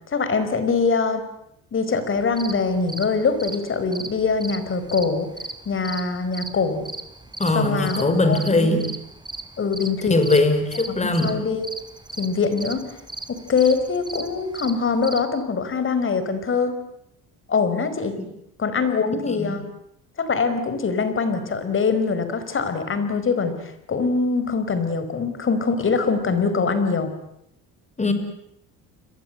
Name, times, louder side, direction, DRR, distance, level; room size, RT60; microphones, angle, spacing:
voice 1, 0.1-1.2 1.7-5.3 5.6-6.9 7.5-8.8 9.6-10.3 11.0-11.7 12.2-12.9 13.3-16.7 17.5-18.2 18.6-19.6 20.2-27.1, left 4 dB, 35° left, 11 dB, 4.8 m, -23 dB
sound 1, 2.1-15.2, right 2 dB, 10° right, 3.1 m, -36 dB
voice 2, 7.4-8.9 10.1-11.3 19.3-19.6 28.0-28.1, left 2 dB, 20° left, 9 dB, 5.3 m, -20 dB
30.0 x 22.5 x 8.0 m, 0.77 s
cardioid pair, 110°, 36 cm